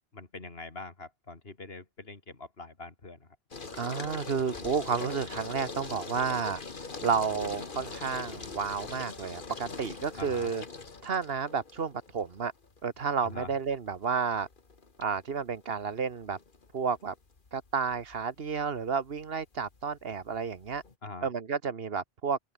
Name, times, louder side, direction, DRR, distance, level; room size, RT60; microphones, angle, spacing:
voice 1, 0.1-3.3 10.2-10.5 13.2-13.5 21.0-21.3, left 3 dB, 70° left, 2.9 m, -43 dB
sound 1, 3.5-20.9, left 4 dB, 55° left, 2.0 m, -43 dB
voice 2, 3.8-6.6 7.0-10.6 11.0-12.5 12.8-14.5 15.0-16.4 16.7-17.1 17.5-20.8 21.2-22.4, right 6 dB, 65° right, 1.5 m, -31 dB
omnidirectional pair, 1.1 m